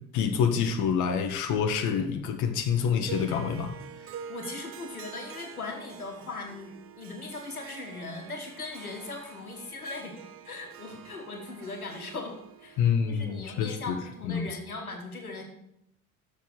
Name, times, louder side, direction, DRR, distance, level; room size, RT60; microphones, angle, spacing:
voice 1, 0.1-3.7 12.8-14.0 14.2-14.5, left 7 dB, 45° left, 6 dB, 1.0 m, -27 dB
Harp, 3.0-14.3, right 8 dB, 30° right, 0.7 m, -46 dB
voice 2, 4.0-10.1 10.5-15.4, left 3 dB, 85° left, 3 dB, 1.3 m, -39 dB
6.8 x 6.3 x 6.3 m, 0.77 s
figure-of-eight pair, 65°, 43 cm